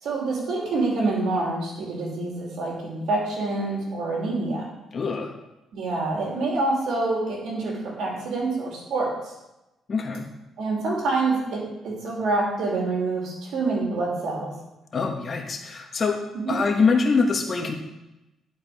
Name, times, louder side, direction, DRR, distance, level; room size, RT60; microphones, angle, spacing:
voice 1, 0.0-4.7 5.7-9.3 10.6-14.5 16.3-16.6, right 3 dB, 75° right, -2 dB, 2.8 m, -26 dB
voice 2, 4.9-5.3 9.9-10.3 14.9-17.7, left 4 dB, 40° left, 2 dB, 1.4 m, -24 dB
10.5 x 5.1 x 4.8 m, 0.96 s
cardioid pair, 90°, 0 cm